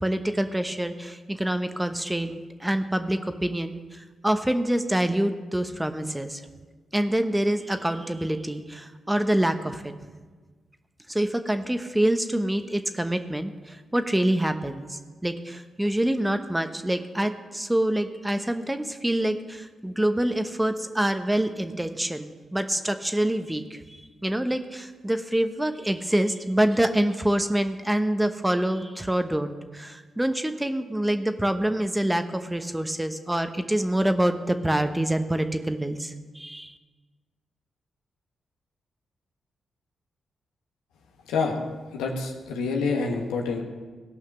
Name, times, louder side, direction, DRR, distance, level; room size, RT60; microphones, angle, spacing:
voice 1, 0.0-6.4 6.9-9.9 11.1-23.8 24.2-36.7, right 1 dB, 10° right, 8 dB, 1.0 m, -26 dB
voice 2, 41.9-43.6, left 4 dB, 85° left, 1 dB, 1.3 m, -27 dB
16.5 x 5.7 x 6.6 m, 1.4 s
hypercardioid pair, 40°, 0 cm